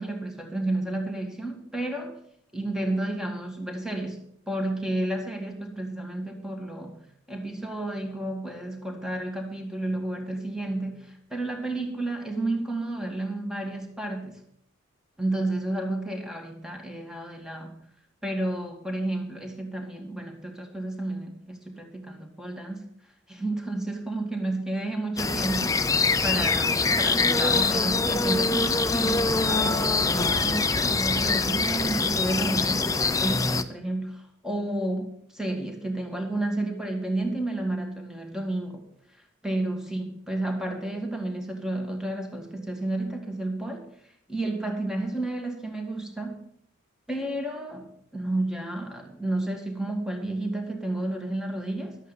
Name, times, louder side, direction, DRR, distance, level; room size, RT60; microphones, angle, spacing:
voice 1, 0.0-2.2 2.5-7.0 7.3-14.4 15.2-17.8 18.2-22.9 23.3-38.9 39.1-43.9 44.3-46.5 47.1-52.0, right 2 dB, 5° right, 3 dB, 1.9 m, -31 dB
sound 1, 25.2-33.6, left 4 dB, 15° left, 0.5 m, -24 dB
12.0 x 8.2 x 6.9 m, 0.68 s
head